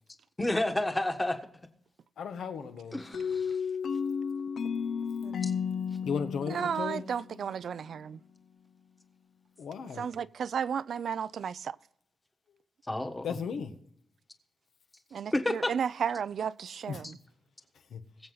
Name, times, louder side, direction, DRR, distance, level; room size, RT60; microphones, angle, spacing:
voice 1, 0.4-1.4 2.9-3.6 5.4-5.5 12.9-13.3 15.3-15.7, left 1 dB, 10° left, 1.4 m, -30 dB
voice 2, 2.2-3.0 6.0-7.1 9.6-10.1 13.2-13.7 16.9-17.0 17.9-18.0, left 6 dB, 85° left, 1.4 m, -35 dB
sound 1, 3.1-7.8, left 6 dB, 60° left, 0.5 m, -33 dB
voice 3, 6.5-8.2 10.0-11.8 15.1-17.2, right 7 dB, 60° right, 0.4 m, -33 dB
21.5 x 7.8 x 3.9 m
wide cardioid pair, 160°, 0 cm